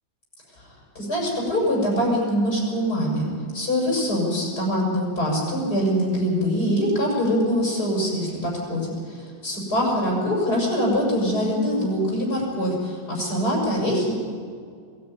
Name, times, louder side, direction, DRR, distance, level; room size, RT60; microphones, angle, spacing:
voice 1, 1.0-14.1, equal, 55° left, -3 dB, 7.1 m, -23 dB
21.5 x 14.0 x 9.6 m, 2.2 s
omnidirectional pair, 2.0 m